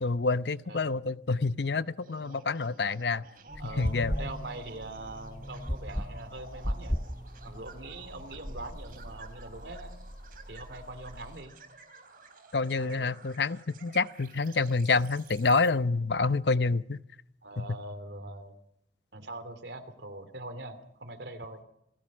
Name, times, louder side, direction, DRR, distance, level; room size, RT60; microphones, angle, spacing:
voice 1, 0.0-3.2 3.8-4.1 12.5-17.0 17.6-17.7, left 4 dB, 80° left, 14 dB, 0.8 m, -27 dB
sound 1, 2.0-15.7, right 4 dB, 50° right, 3.9 m, -53 dB
sound 2, 3.5-11.4, equal, 45° left, 7.3 m, -49 dB
sound 3, 3.5-8.9, equal, 10° left, 0.8 m, -36 dB
voice 2, 3.6-7.0 7.4-9.9 10.5-11.6 12.8-13.1 17.4-18.5 19.1-21.6, right 2 dB, 85° right, 9 dB, 2.9 m, -42 dB
27.5 x 17.5 x 6.3 m, 0.78 s
head